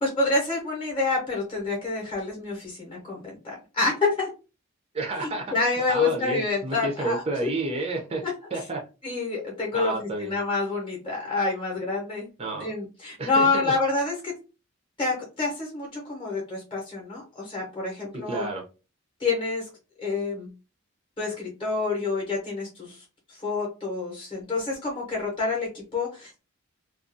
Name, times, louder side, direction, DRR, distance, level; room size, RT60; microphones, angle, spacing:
voice 1, 0.0-4.3 5.2-7.5 8.2-8.3 9.0-12.3 12.6-14.3 15.0-18.5 19.2-19.7 20.0-20.5 21.2-26.4, left 3 dB, 25° left, -2 dB, 0.8 m, -28 dB
voice 2, 4.9-8.2 8.5-8.8 9.7-10.4 12.4-12.7 13.2-13.7 18.1-18.6, right 2 dB, 25° right, 1 dB, 0.4 m, -30 dB
2.3 x 2.3 x 2.5 m, 0.31 s
head